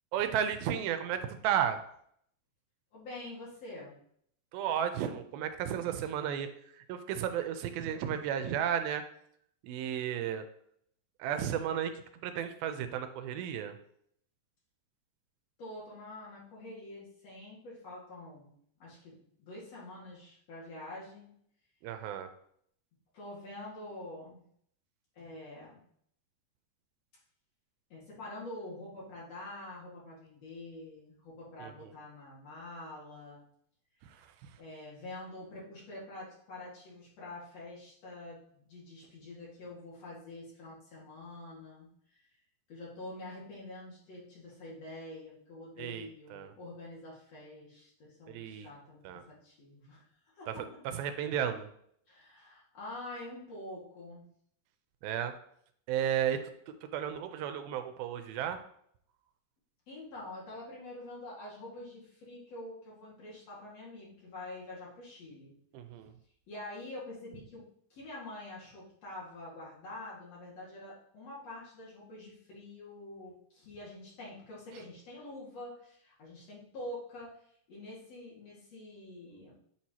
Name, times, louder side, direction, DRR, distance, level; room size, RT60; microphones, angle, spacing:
voice 1, 0.1-1.8 4.5-9.0 9.6-10.5 11.2-11.9 12.2-13.8 21.8-22.3 31.6-31.9 34.0-34.6 45.8-46.5 48.3-48.7 49.0-49.2 50.5-51.7 55.0-55.3 55.9-58.6 65.7-66.1, right 9 dB, 85° right, 8 dB, 2.4 m, -34 dB
voice 2, 2.9-4.0 15.6-18.5 18.8-21.3 23.1-24.4 25.2-25.8 27.9-33.4 34.6-42.2 42.7-50.6 52.1-54.3 59.9-65.5 66.5-77.3 77.7-79.5, left 1 dB, 50° left, -7 dB, 2.7 m, -46 dB
8.7 x 4.6 x 2.8 m, 0.67 s
omnidirectional pair, 4.2 m